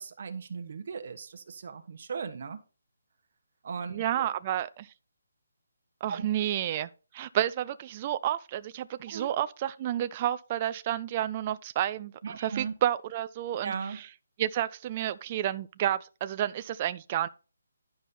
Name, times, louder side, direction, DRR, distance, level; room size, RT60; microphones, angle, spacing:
voice 1, 0.0-2.6 3.6-4.3 6.1-6.3 9.1-9.3 12.2-12.7 13.6-14.0, right 6 dB, 45° right, 1.2 m, -37 dB
voice 2, 3.9-4.9 6.0-14.1 14.4-17.3, right 12 dB, 25° right, 0.3 m, -30 dB
11.0 x 5.3 x 4.3 m
hypercardioid pair, 175°, 0 cm